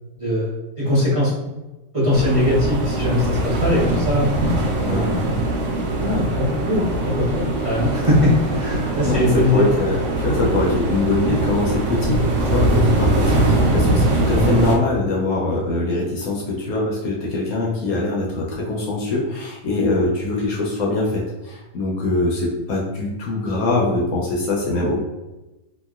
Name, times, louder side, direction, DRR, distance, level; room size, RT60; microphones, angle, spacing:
voice 1, 0.2-1.5 1.9-4.3 4.8-5.2 6.0-9.7, left 1 dB, 30° right, -10 dB, 0.7 m, -21 dB
sound 1, 2.1-14.8, right 2 dB, 65° right, 0.7 m, -21 dB
voice 2, 9.0-25.0, left 2 dB, 70° left, -3 dB, 1.0 m, -23 dB
2.9 x 2.5 x 2.4 m, 1.1 s
omnidirectional pair, 1.7 m